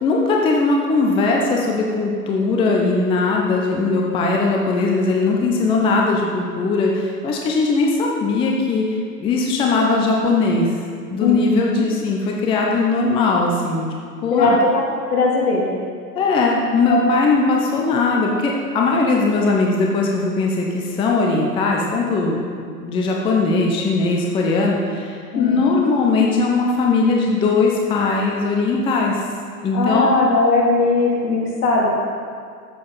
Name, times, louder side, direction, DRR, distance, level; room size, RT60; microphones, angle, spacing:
voice 1, 0.0-10.8 11.1-13.9 14.2-14.6 16.2-29.2 29.6-30.1, left 3 dB, 10° left, -1 dB, 0.6 m, -19 dB
voice 2, 11.2-11.8 14.3-14.8 15.1-15.7 16.9-17.0 25.3-25.6 29.7-31.9, left 3 dB, 60° left, -3 dB, 3.0 m, -18 dB
13.0 x 7.7 x 4.0 m, 2.1 s
figure-of-eight pair, 110°, 50 cm